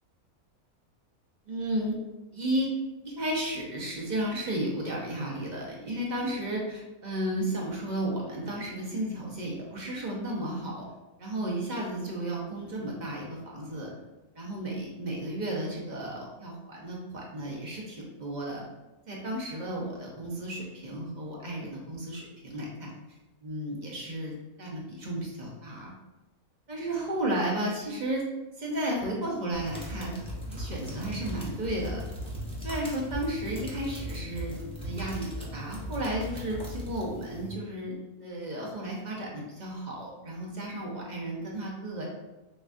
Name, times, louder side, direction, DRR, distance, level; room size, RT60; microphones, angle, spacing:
voice 1, 1.5-2.0 2.3-2.7 3.0-10.9 11.2-13.9 14.3-18.6 19.1-22.9 23.4-24.3 24.6-25.9 26.7-28.2 28.6-30.2 30.5-32.0 32.6-34.5 34.8-42.1, right 1 dB, 40° right, -3 dB, 0.7 m, -33 dB
sound 1, 29.5-37.5, equal, 5° left, 0.5 m, -38 dB
6.2 x 2.4 x 2.5 m, 1.1 s
omnidirectional pair, 1.5 m